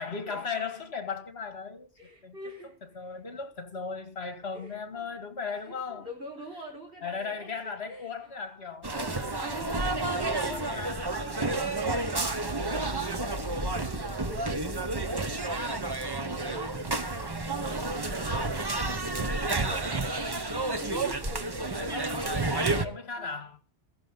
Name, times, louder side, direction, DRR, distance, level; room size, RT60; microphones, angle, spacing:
voice 1, 0.0-1.9 2.2-2.4 3.0-6.1 7.0-8.9 9.7-9.8 10.1-10.2 10.5-11.2 21.8-23.6, left 5 dB, 60° left, 2.1 m, -37 dB
voice 2, 2.0-2.7 3.1-3.2 4.5-5.1 5.6-8.1 8.9-9.8 10.2-12.2 12.6-15.8 16.2-18.5 18.9-20.1 20.4-23.3, right 1 dB, 50° right, 4.9 m, -45 dB
sound 1, 8.8-22.9, right 2 dB, 20° right, 0.9 m, -30 dB
15.5 x 15.0 x 3.9 m
omnidirectional pair, 1.2 m